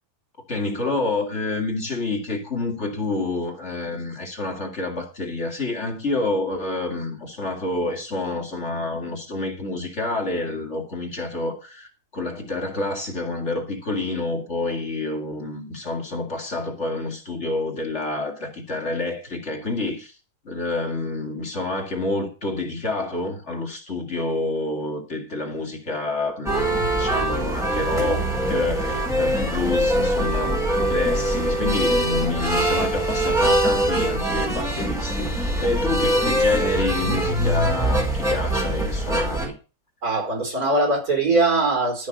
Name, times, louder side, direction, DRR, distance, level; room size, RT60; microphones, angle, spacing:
voice 1, 0.5-20.1 20.4-39.6, left 2 dB, 45° left, 2.8 m, -28 dB
sound 1, 26.5-39.5, right 1 dB, ahead, 4.4 m, -23 dB
voice 2, 40.0-42.1, right 2 dB, 75° right, 5.1 m, -21 dB
13.5 x 5.9 x 6.6 m
omnidirectional pair, 1.6 m